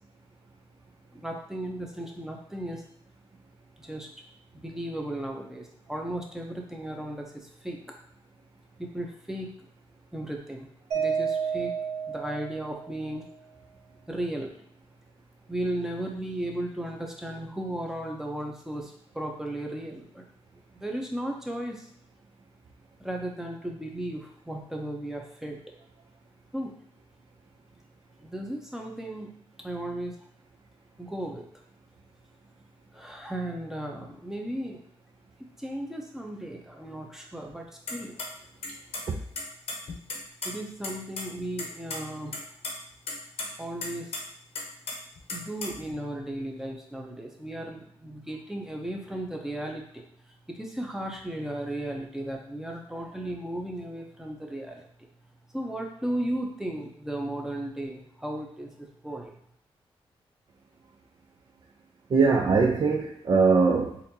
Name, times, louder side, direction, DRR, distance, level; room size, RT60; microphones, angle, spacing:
voice 1, 1.1-2.8 3.8-4.1 4.5-7.9 8.8-9.7 10.1-10.7 10.9-11.7 12.1-13.3 14.1-14.5 15.5-20.3 20.7-21.9 23.0-25.6 26.5-26.7 28.2-29.3 29.6-30.1 31.0-31.4 32.9-34.8 35.6-38.2 40.4-42.4 43.6-44.1 45.3-50.0 50.5-55.1 55.5-59.4, right 1 dB, 5° right, 1 dB, 0.7 m, -35 dB
Mallet percussion, 10.9-13.2, right 6 dB, 85° right, 0.9 m, -30 dB
sound 1, 37.9-38.3 38.6-39.0 39.4-40.5 40.8-40.9 41.2-41.3 41.6-42.0 42.3-42.7 43.1-43.5 43.8-44.2 44.5-45.9, left 3 dB, 70° left, 0.8 m, -34 dB
voice 2, 62.1-64.0, right 4 dB, 50° right, -1 dB, 0.5 m, -21 dB
4.2 x 2.7 x 2.8 m, 0.68 s
cardioid pair, 90°, 10 cm